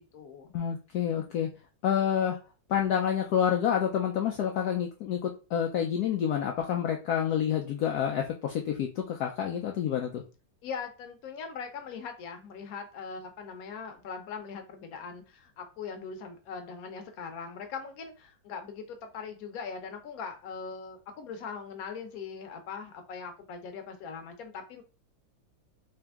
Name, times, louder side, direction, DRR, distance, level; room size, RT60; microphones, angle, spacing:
voice 1, 0.0-0.5 10.6-24.8, left 5 dB, 60° left, 5 dB, 1.0 m, -41 dB
voice 2, 0.5-1.5 1.8-2.4 2.7-10.2, left 9 dB, 85° left, 2 dB, 0.8 m, -28 dB
3.4 x 2.9 x 3.4 m, 0.33 s
omnidirectional pair, 2.2 m